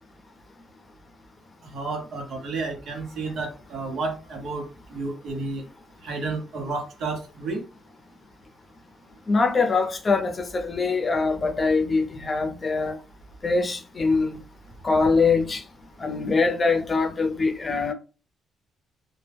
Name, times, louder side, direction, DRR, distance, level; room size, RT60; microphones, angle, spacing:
voice 1, 1.7-4.6 4.9-5.6 6.0-7.6, right 3 dB, 70° right, 0.9 m, -31 dB
voice 2, 9.3-13.0 13.4-14.4 14.8-15.6 16.0-17.9, left 4 dB, 30° left, 0.6 m, -23 dB
2.2 x 2.1 x 3.3 m
cardioid pair, 90°, 0 cm